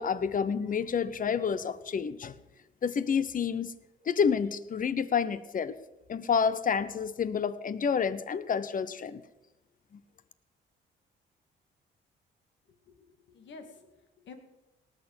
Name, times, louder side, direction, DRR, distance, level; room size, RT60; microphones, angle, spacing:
voice 1, 0.0-2.3 2.8-3.7 4.1-5.8 6.1-9.2, left 6 dB, 45° left, 15 dB, 0.9 m, -29 dB
voice 2, 13.0-14.4, left 4 dB, 65° left, 6 dB, 2.3 m, -50 dB
18.5 x 6.7 x 7.8 m, 1.0 s
cardioid pair, 90°, 20 cm